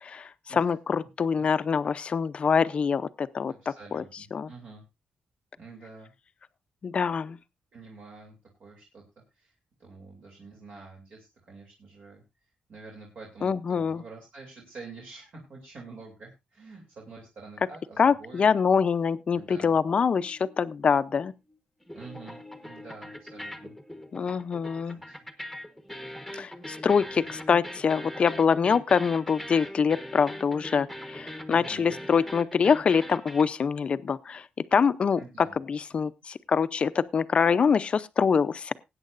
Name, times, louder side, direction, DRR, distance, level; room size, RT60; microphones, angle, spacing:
voice 1, 0.0-4.0 4.3-4.5 6.8-7.4 13.4-14.0 18.0-21.3 24.1-25.0 26.4-34.4 34.7-38.7, left 6 dB, 40° left, 0.6 m, -25 dB
voice 2, 3.5-4.8 5.6-6.1 7.7-8.3 8.6-9.0 9.3-9.5 9.8-12.2 12.7-18.5 19.3-19.8 21.9-23.8 24.8-25.2 26.8-27.1 31.5-32.1 35.2-35.6, right 3 dB, 60° right, 2.9 m, -47 dB
sound 1, 19.3-21.6 21.8-33.4, left 1 dB, ahead, 1.2 m, -42 dB
20.0 x 8.9 x 2.6 m
wide cardioid pair, 145°, 3 cm